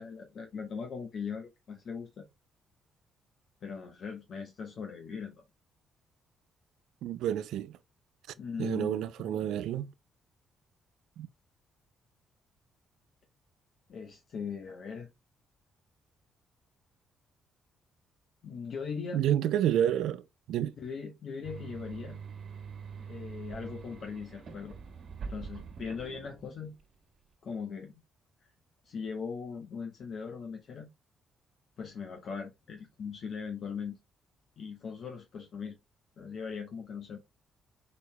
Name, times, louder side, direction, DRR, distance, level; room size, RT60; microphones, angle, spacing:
voice 1, 0.0-2.3 3.6-5.4 8.4-9.5 13.9-15.1 18.4-19.2 20.8-22.2 23.0-24.7 25.3-26.7 27.4-27.9 28.8-30.9 31.8-34.0 34.6-35.8 36.2-37.2, left 5 dB, 60° left, 1.0 m, -40 dB
voice 2, 7.0-7.8 8.6-9.9 11.2-11.3 19.1-20.8, right 10 dB, 85° right, 0.4 m, -29 dB
sound 1, 21.4-26.8, right 5 dB, 55° right, 1.6 m, -44 dB
5.2 x 4.6 x 2.2 m
cardioid pair, 90°, 0 cm